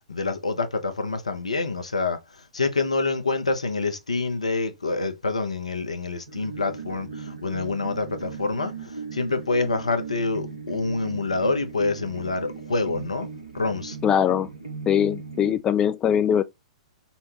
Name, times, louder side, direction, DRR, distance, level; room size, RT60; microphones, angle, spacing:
voice 1, 0.1-2.2 2.5-8.7 9.1-13.3 13.5-14.0, left 3 dB, 85° left, 0.8 m, -26 dB
sound 1, 6.3-15.6, right 5 dB, 85° right, 1.1 m, -37 dB
voice 2, 14.0-14.5 14.9-16.4, left 9 dB, 25° left, 0.3 m, -21 dB
5.5 x 2.2 x 2.9 m
figure-of-eight pair, 105°, 3 cm